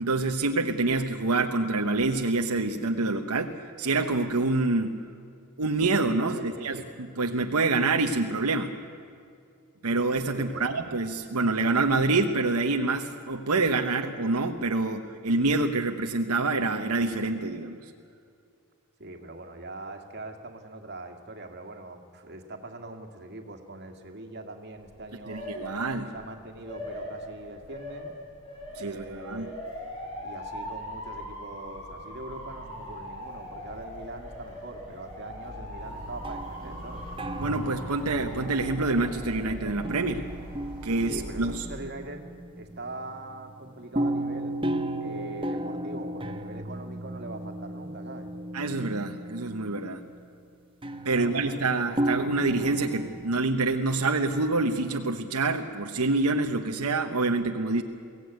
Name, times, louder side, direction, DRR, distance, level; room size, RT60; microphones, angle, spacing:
voice 1, 0.0-4.9 5.6-6.8 7.2-8.7 9.8-17.8 25.3-26.1 28.8-29.5 37.4-40.2 40.8-41.7 48.5-50.0 51.0-57.8, right 3 dB, 85° right, 4 dB, 1.0 m, -26 dB
voice 2, 6.2-6.9 10.3-10.8 19.0-25.5 26.1-28.1 28.8-29.6 30.2-37.0 41.0-42.3 42.6-44.6 45.0-48.3 51.1-51.9, right 2 dB, 50° right, 4 dB, 2.1 m, -42 dB
Motor vehicle (road) / Siren, 24.7-41.5, equal, 25° left, 7.3 m, -41 dB
sound 1, 35.8-39.4 39.8-43.1 43.9-50.0 50.8-53.4, right 1 dB, 25° right, 1.0 m, -34 dB
22.5 x 16.5 x 9.3 m, 2.4 s
head